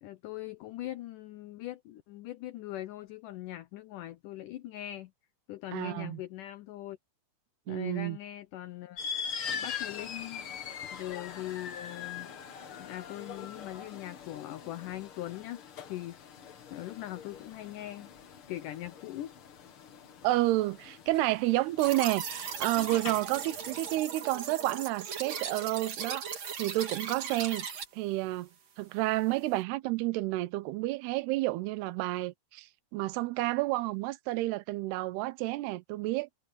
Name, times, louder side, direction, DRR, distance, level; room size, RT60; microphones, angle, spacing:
voice 1, 0.0-5.1 5.5-7.0 7.7-9.0 9.5-10.4 10.9-12.3 12.8-16.2 16.7-18.1 18.5-19.3, left 14 dB, 85° left, 1.8 m, -41 dB
voice 2, 5.7-6.2 7.7-8.2 20.2-26.3 26.6-27.7 27.9-28.5 28.8-36.3, right 18 dB, 80° right, 2.8 m, -30 dB
sound 1, 9.0-24.0, left 7 dB, 60° left, 1.5 m, -43 dB
sound 2, 21.8-27.8, right 6 dB, 45° right, 3.2 m, -38 dB
omnidirectional pair, 4.7 m